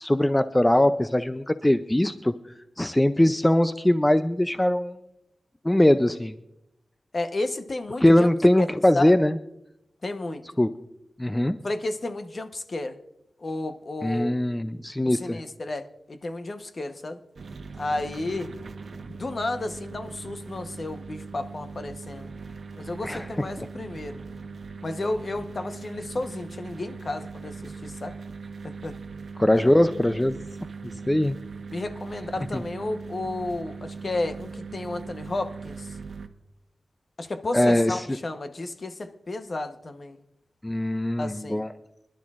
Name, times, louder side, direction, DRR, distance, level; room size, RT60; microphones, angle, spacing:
voice 1, 0.0-2.3 2.8-5.0 5.6-6.4 8.0-9.4 10.6-10.7 11.2-11.6 14.0-15.4 23.0-23.3 23.6-23.7 29.4-30.4 31.1-31.4 32.5-32.6 37.5-38.1 40.6-41.7, left 1 dB, 10° left, 11 dB, 0.4 m, -21 dB
voice 2, 7.1-8.3 8.6-8.7 8.9-9.1 10.0-10.6 11.6-13.0 13.4-14.3 15.0-17.2 17.8-18.5 19.1-22.3 22.8-24.2 24.8-28.1 28.6-29.0 31.7-35.9 37.2-40.2 41.2-41.6, left 2 dB, 45° left, 8 dB, 0.9 m, -32 dB
sound 1, 17.4-36.3, right 4 dB, 75° right, 1.0 m, -40 dB
24.5 x 11.5 x 2.4 m, 0.83 s
wide cardioid pair, 110°, 0 cm